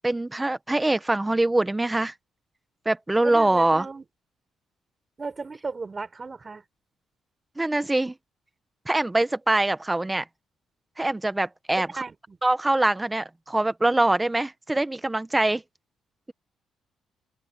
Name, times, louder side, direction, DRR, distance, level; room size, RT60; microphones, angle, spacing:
voice 1, 0.0-2.1 2.8-3.9 7.6-8.1 8.9-10.2 11.0-11.9 12.4-15.6, right 2 dB, 15° right, 1.2 m, -23 dB
voice 2, 3.2-4.0 5.2-6.6 11.8-12.4, right 4 dB, 30° right, 6.3 m, -35 dB
open air
cardioid pair, 90°, 0 cm